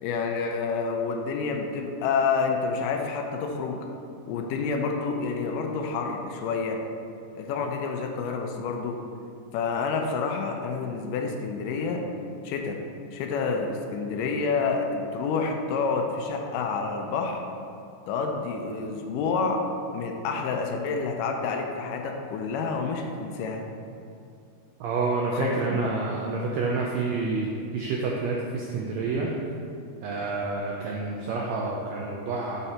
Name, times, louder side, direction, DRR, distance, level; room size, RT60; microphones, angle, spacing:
voice 1, 0.0-3.9 4.3-6.8 7.4-9.0 9.5-12.1 12.4-12.8 13.1-17.4 18.1-19.6 19.9-23.6 25.3-25.9, left 4 dB, 85° left, 3 dB, 2.2 m, -28 dB
voice 2, 24.8-29.3 30.0-32.7, right 3 dB, 85° right, -2 dB, 1.5 m, -28 dB
6.0 x 5.6 x 4.3 m, 2.5 s
omnidirectional pair, 3.7 m